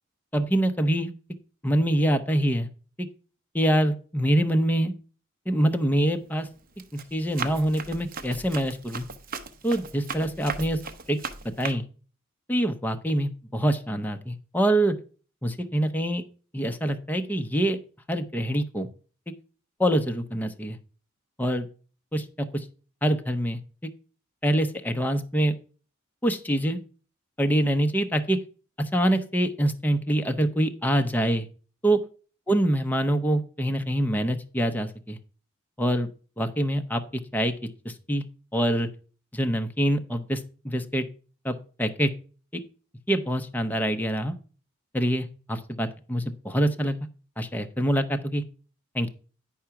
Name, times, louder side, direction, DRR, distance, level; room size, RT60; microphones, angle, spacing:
voice 1, 0.3-1.1 1.6-2.7 3.0-3.1 3.5-4.9 5.5-6.5 6.9-9.1 9.6-10.8 11.1-11.2 11.4-11.8 12.5-15.0 15.4-16.2 16.5-17.8 18.1-18.9 19.8-20.8 21.4-21.7 22.1-22.7 23.0-23.9 24.4-25.5 26.2-26.8 27.4-28.4 28.8-31.5 31.8-32.0 32.5-35.2 35.8-36.1 36.4-37.5 37.8-38.2 38.5-38.9 39.3-41.1 41.4-42.1 43.1-44.3 44.9-47.0 47.4-48.4 48.9-49.1, right 1 dB, 10° left, 6 dB, 0.6 m, -25 dB
Run, 5.6-6.0 6.5-11.7, right 5 dB, 45° right, 0.8 m, -37 dB
10.0 x 4.7 x 5.8 m, 0.39 s
head